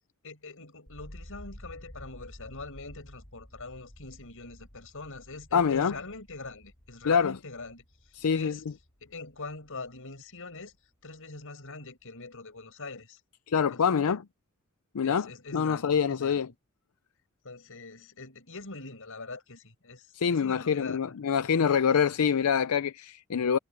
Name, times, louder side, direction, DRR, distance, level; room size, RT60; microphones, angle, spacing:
voice 1, 0.2-7.8 8.3-8.6 9.0-10.7 11.0-13.2 13.7-14.0 15.0-16.5 17.4-21.7, left 3 dB, 65° left, 7.6 m, -43 dB
sound 1, 0.9-10.8 11.1-11.9, equal, 30° left, 2.9 m, -51 dB
voice 2, 5.5-5.9 7.1-7.3 8.1-8.5 13.5-14.2 14.9-16.5 20.1-23.6, left 7 dB, 85° left, 0.5 m, -25 dB
head